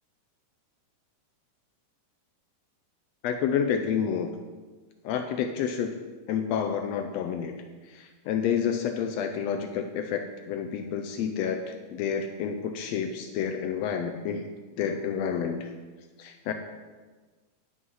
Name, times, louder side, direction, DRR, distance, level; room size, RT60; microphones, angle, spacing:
voice 1, 3.2-4.3 5.0-6.0 6.3-7.6 7.9-14.5 14.8-15.7 16.2-16.5, left 7 dB, 85° left, 6 dB, 1.4 m, -29 dB
11.0 x 6.2 x 5.5 m, 1.4 s
omnidirectional pair, 3.7 m